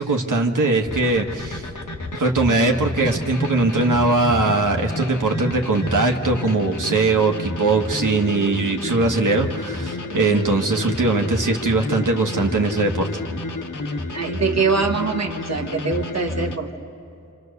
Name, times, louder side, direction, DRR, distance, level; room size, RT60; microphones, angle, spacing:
voice 1, 0.0-1.7 2.1-13.2, right 3 dB, 80° right, 2 dB, 1.7 m, -20 dB
sound 1, 0.8-16.6, left 2 dB, 75° left, 1.7 m, -30 dB
voice 2, 14.1-16.7, right 4 dB, 55° right, 2 dB, 1.4 m, -23 dB
27.0 x 27.0 x 6.7 m, 2.7 s
wide cardioid pair, 80°, 31 cm